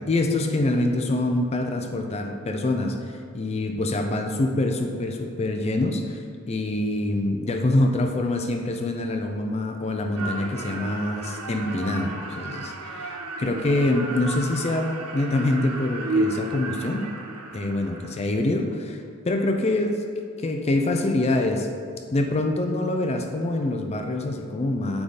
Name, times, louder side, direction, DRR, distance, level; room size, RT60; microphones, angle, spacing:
voice 1, 0.0-17.1 17.5-20.0 20.4-21.7 22.1-25.0, left 2 dB, 30° left, 4 dB, 0.4 m, -25 dB
sound 1, 10.2-18.2, right 2 dB, 90° right, 0.6 m, -32 dB
8.3 x 3.6 x 4.0 m, 2.3 s
head